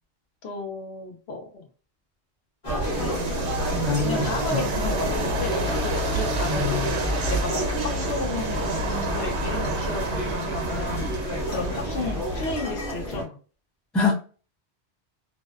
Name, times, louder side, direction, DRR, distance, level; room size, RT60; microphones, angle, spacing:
voice 1, 0.4-1.7 3.6-6.8 7.3-13.4, left 3 dB, 70° left, 3 dB, 0.9 m, -33 dB
sound 1, 2.6-13.2, right 1 dB, 40° left, 1.1 m, -30 dB
sound 2, 2.8-12.5, right 1 dB, 80° right, 0.9 m, -29 dB
voice 2, 3.7-4.7 6.5-6.9 13.9-14.1, left 4 dB, ahead, -2 dB, 0.4 m, -25 dB
2.6 x 2.1 x 2.2 m, 0.38 s
omnidirectional pair, 1.1 m